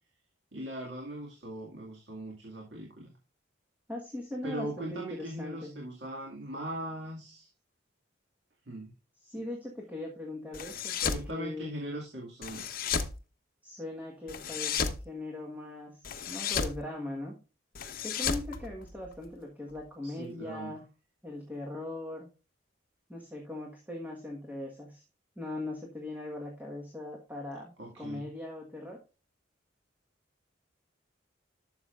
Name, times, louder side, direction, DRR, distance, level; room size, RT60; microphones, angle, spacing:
voice 1, 0.5-3.1 4.4-7.5 8.7-8.9 11.1-12.9 20.0-20.8 27.8-28.3, right 1 dB, 60° right, -1 dB, 2.1 m, -40 dB
voice 2, 3.9-5.8 9.2-11.7 13.6-16.0 16.3-17.4 18.0-20.9 21.2-22.3 23.1-25.0 25.4-27.7 28.0-29.0, left 1 dB, 10° right, -1 dB, 1.4 m, -40 dB
sound 1, 10.5-11.3 12.4-13.1 14.3-15.0 16.0-16.8 17.7-19.3, left 6 dB, 45° left, 1.0 m, -33 dB
12.0 x 7.0 x 2.5 m, 0.32 s
head